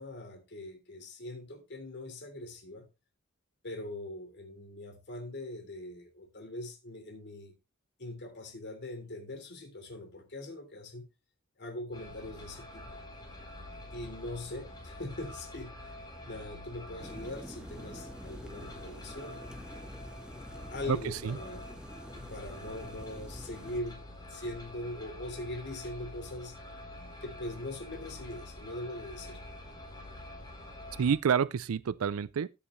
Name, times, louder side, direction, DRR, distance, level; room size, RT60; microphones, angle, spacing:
voice 1, 0.0-2.9 3.6-7.5 8.0-11.0 11.6-12.9 13.9-19.4 20.7-21.7 22.1-24.0 24.3-26.6 27.2-29.4, left 1 dB, 55° left, 3.3 m, -42 dB
sound 1, 11.9-31.2, left 1 dB, 20° left, 3.6 m, -47 dB
sound 2, 17.0-23.8, equal, 5° right, 0.8 m, -48 dB
voice 2, 20.9-21.4 31.0-32.5, right 7 dB, 80° right, 0.4 m, -29 dB
14.0 x 7.1 x 3.1 m
head